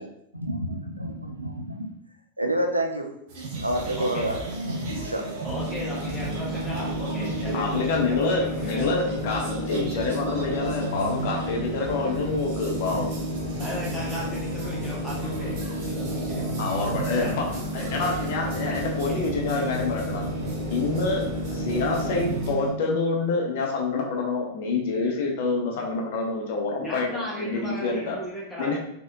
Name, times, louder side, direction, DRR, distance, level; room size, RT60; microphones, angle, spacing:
voice 1, 0.3-1.9 2.4-3.1 3.6-4.4 4.7-5.3 6.1-6.7 7.1-7.8, right 1 dB, 85° right, 3 dB, 0.4 m, -29 dB
sound 1, 3.3-22.5, right 2 dB, 50° right, 0.7 m, -36 dB
voice 2, 5.4-9.1 13.6-17.5 17.8-18.5 19.1-19.2 19.4-19.5 20.2-20.3 26.8-28.8, equal, ahead, -7 dB, 1.4 m, -37 dB
sound 2, 5.5-22.7, equal, 30° right, 1.1 m, -32 dB
voice 3, 7.5-13.2 16.6-17.5 17.7-20.3 20.7-28.2 28.6-28.8, left 3 dB, 50° left, 1 dB, 0.7 m, -27 dB
4.1 x 2.8 x 2.4 m, 0.75 s
figure-of-eight pair, 90°, 0 cm